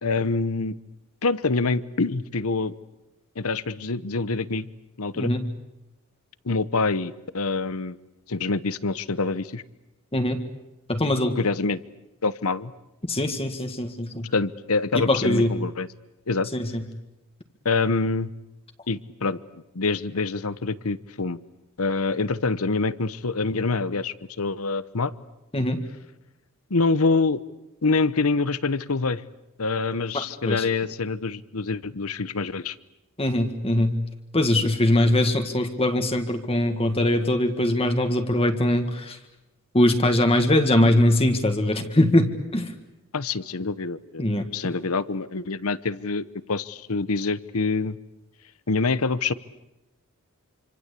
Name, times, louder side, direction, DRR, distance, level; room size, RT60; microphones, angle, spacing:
voice 1, 0.0-0.8 1.2-2.8 3.4-4.7 5.0-5.3 6.4-8.0 8.3-9.6 11.4-11.8 12.2-12.7 14.3-15.9 16.3-16.5 17.6-18.3 18.9-21.4 21.8-25.1 26.7-27.4 27.8-29.2 29.6-32.8 43.1-44.2 44.5-48.0 48.7-49.3, left 3 dB, 75° left, 17 dB, 1.0 m, -26 dB
voice 2, 10.9-11.4 13.1-14.3 14.9-15.5 16.5-16.8 25.5-25.8 30.1-30.6 33.2-33.9 34.3-39.2 39.7-42.7 44.2-44.5, left 1 dB, 25° left, 6 dB, 1.8 m, -22 dB
27.0 x 25.5 x 8.4 m, 0.96 s
head